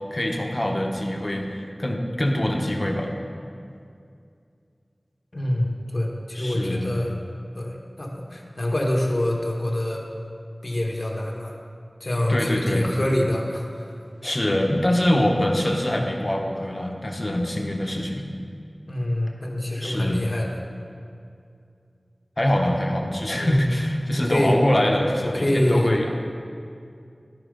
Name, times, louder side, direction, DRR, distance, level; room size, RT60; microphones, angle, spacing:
voice 1, 0.1-3.1 6.3-7.0 12.3-13.0 14.2-18.3 19.8-20.2 22.4-26.3, left 1 dB, 40° left, 2 dB, 1.0 m, -24 dB
voice 2, 5.3-7.1 7.5-10.0 10.6-11.5 12.0-14.0 15.1-15.3 18.9-20.6 23.3-23.7 24.2-24.6 25.2-25.9, left 1 dB, 55° left, -1 dB, 1.3 m, -25 dB
12.5 x 4.4 x 5.1 m, 2.4 s
wide cardioid pair, 50°, 0 cm